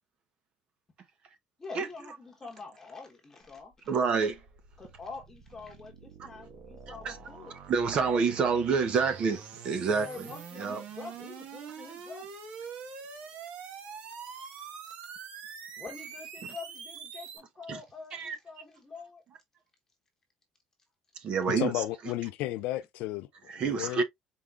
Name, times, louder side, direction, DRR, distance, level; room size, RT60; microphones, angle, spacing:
voice 1, 1.6-3.9 4.8-7.5 10.0-12.3 14.3-14.4 15.8-19.2, left 4 dB, 20° left, 1.1 m, -45 dB
sound 1, 3.4-17.4, right 6 dB, 60° right, 1.4 m, -45 dB
voice 2, 3.9-4.4 6.9-7.2 7.7-10.1 10.6-10.8 17.7-17.8 18.1-18.4 21.2-21.8 23.5-24.0, right 5 dB, 45° right, 0.8 m, -28 dB
voice 3, 21.6-23.3 23.5-24.0, left 15 dB, 75° left, 0.4 m, -33 dB
4.6 x 3.6 x 2.4 m
cardioid pair, 125°, 2 cm